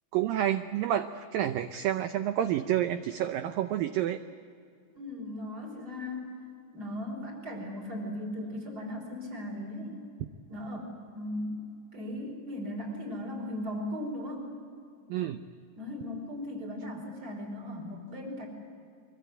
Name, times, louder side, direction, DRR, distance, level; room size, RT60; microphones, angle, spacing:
voice 1, 0.1-4.2 15.1-15.4, right 11 dB, 90° right, 9 dB, 1.9 m, -29 dB
voice 2, 5.0-6.3 6.7-10.0 10.5-11.6 11.9-14.5 15.8-18.5, left 1 dB, 20° right, 2 dB, 5.4 m, -37 dB
25.0 x 23.5 x 9.1 m, 2.3 s
omnidirectional pair, 5.0 m